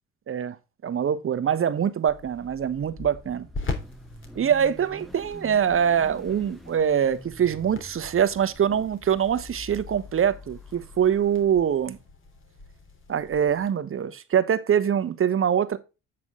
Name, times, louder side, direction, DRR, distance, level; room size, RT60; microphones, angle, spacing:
voice 1, 0.8-3.5 4.4-12.0 13.1-15.8, right 8 dB, 45° right, 1.1 m, -24 dB
sound 1, 1.5-13.7, left 3 dB, 40° left, 3.2 m, -42 dB
Car / Idling / Accelerating revving vroom, 2.1-11.5, left 2 dB, ahead, 1.4 m, -46 dB
8.8 x 6.1 x 3.7 m
supercardioid pair, 70°, 31 cm